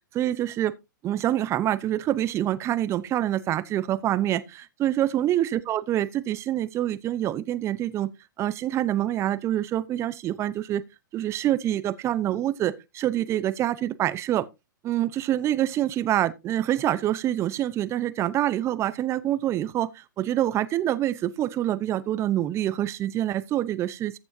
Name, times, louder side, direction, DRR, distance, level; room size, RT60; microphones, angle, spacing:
voice 1, 0.1-0.7 1.0-8.1 8.4-10.8 11.1-14.4 14.8-24.2, right 12 dB, 25° right, 0.8 m, -26 dB
14.5 x 7.2 x 2.7 m
hypercardioid pair, 120°, 11 cm